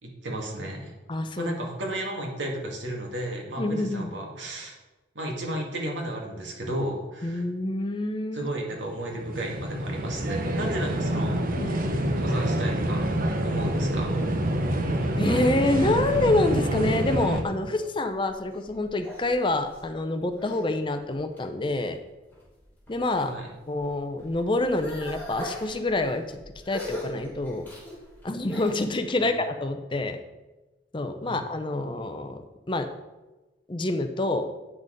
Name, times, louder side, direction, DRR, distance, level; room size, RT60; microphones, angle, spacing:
voice 1, 0.0-1.0 1.4-4.8 5.2-7.4 8.3-11.4 12.2-13.2 13.4-14.2 23.2-23.5 29.2-29.3 31.2-31.4, right 1 dB, 75° right, 0 dB, 2.1 m, -33 dB
voice 2, 1.1-1.5 3.6-4.1 7.2-8.5 11.6-11.7 15.2-22.0 22.9-23.3 23.7-26.2 26.7-27.7 28.2-30.2 30.9-32.4 32.7-32.9 33.7-34.5, left 2 dB, 25° left, 8 dB, 0.5 m, -27 dB
sound 1, 8.8-17.4, right 1 dB, 45° right, 1.0 m, -27 dB
sound 2, 18.1-20.6 21.1-21.7 22.3-23.3 23.7-28.9, left 1 dB, 10° left, 3.3 m, -41 dB
9.0 x 6.1 x 5.1 m, 1.1 s
head